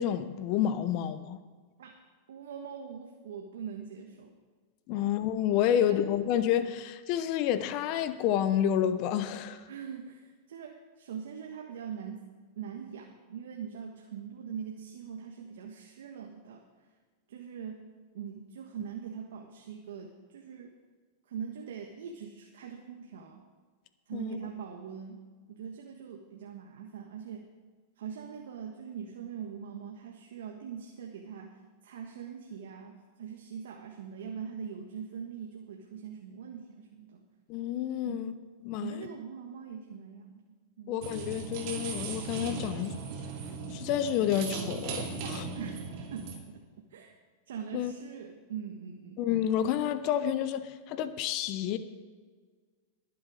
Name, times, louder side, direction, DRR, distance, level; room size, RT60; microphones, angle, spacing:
voice 1, 0.0-1.4 4.9-9.6 24.1-24.4 37.5-38.3 38.6-39.1 40.9-43.0 43.7-45.4 47.7-47.9 49.2-51.8, left 10 dB, 50° left, 12 dB, 0.9 m, -29 dB
voice 2, 2.3-4.3 4.9-5.1 5.7-6.0 9.7-12.3 12.5-16.6 17.3-17.9 18.1-20.7 21.3-23.4 24.1-25.2 25.5-27.5 28.0-37.2 38.0-38.3 38.8-41.0 45.2-46.6 46.9-47.2 47.5-49.2, right 7 dB, 75° right, 2 dB, 1.5 m, -42 dB
sound 1, 41.0-46.4, right 5 dB, 55° right, 2.7 m, -38 dB
21.0 x 7.8 x 5.0 m, 1.5 s
hypercardioid pair, 110°, 0 cm